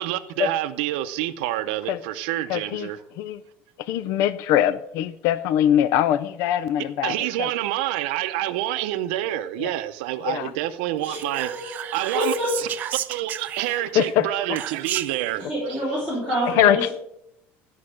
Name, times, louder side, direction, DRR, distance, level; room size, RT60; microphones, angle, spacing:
voice 1, 0.0-3.0 7.0-12.7 13.1-15.5, right 14 dB, 85° right, 11 dB, 0.6 m, -28 dB
voice 2, 2.5-2.9 3.2-3.4 3.8-7.5 9.6-9.7 10.2-10.5 13.9-14.3 16.5-16.9, left 11 dB, 55° left, 14 dB, 0.4 m, -22 dB
voice 3, 11.0-11.8 12.1-12.5 14.8-14.9 15.4-16.9, equal, 15° left, -8 dB, 3.6 m, -27 dB
Whispering, 11.0-14.0 14.6-15.3, right 11 dB, 35° right, 0.4 m, -32 dB
12.0 x 5.5 x 6.3 m, 0.78 s
cardioid pair, 170°, 5 cm